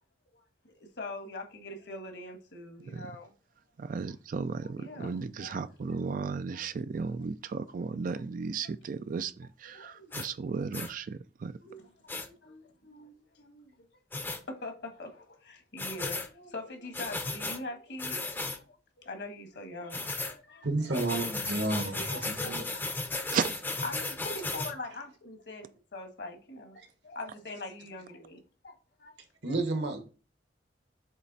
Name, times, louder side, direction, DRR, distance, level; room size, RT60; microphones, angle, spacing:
voice 1, 0.3-3.3 4.8-5.6 9.6-10.1 11.6-13.8 14.1-18.7 19.0-21.0 21.9-23.0 23.8-29.1, left 2 dB, 65° left, 1.5 m, -43 dB
voice 2, 3.8-11.6 23.3-23.6, right 5 dB, 50° right, 0.3 m, -35 dB
sound 1, 10.1-10.3 10.7-10.9 12.1-12.3 14.1-14.4 15.8-16.3 16.9-17.6 18.0-18.6 19.9-20.3 20.9-24.7, left 3 dB, 10° left, 0.6 m, -35 dB
voice 3, 20.6-22.6 29.4-30.0, right 2 dB, 70° right, 1.2 m, -31 dB
7.4 x 3.3 x 4.0 m
head